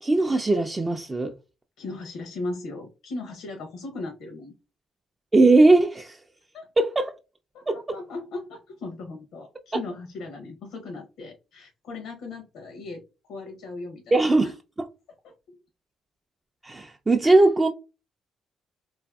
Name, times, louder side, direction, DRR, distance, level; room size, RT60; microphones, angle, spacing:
voice 1, 0.0-1.3 5.3-6.2 6.8-7.1 7.7-7.8 14.1-14.4 16.6-17.7, right 2 dB, 20° right, 0.3 m, -19 dB
voice 2, 1.8-4.5 6.5-6.7 7.5-13.0 13.3-14.5 15.2-15.6 17.2-17.4, left 2 dB, 85° left, 0.6 m, -37 dB
2.6 x 2.4 x 2.3 m
cardioid pair, 90°, 0 cm